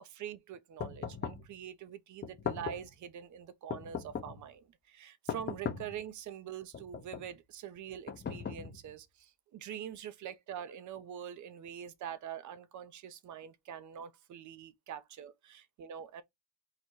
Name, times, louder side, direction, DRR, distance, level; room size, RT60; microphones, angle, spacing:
voice 1, 0.0-16.2, right 9 dB, 40° right, 0.6 m, -45 dB
sound 1, 0.8-1.5 2.2-2.9 3.7-4.5 5.3-6.0 6.7-7.3 8.1-9.0, left 6 dB, 20° left, 0.6 m, -39 dB
4.0 x 2.1 x 4.5 m
cardioid pair, 110°, 50 cm